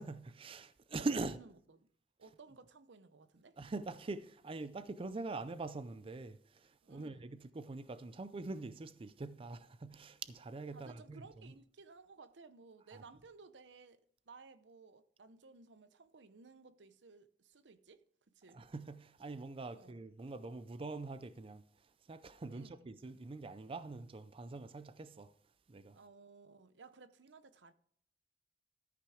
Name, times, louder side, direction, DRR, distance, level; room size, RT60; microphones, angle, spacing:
voice 1, 0.0-1.4 3.6-11.5 12.9-13.0 18.5-21.6 22.1-25.3 25.7-26.0, right 3 dB, 30° right, 0.4 m, -43 dB
voice 2, 1.0-1.9 2.2-3.6 6.8-7.4 10.7-18.6 19.7-20.0 22.5-22.9 25.9-27.7, right 4 dB, 85° right, 0.7 m, -58 dB
13.5 x 5.9 x 4.8 m
head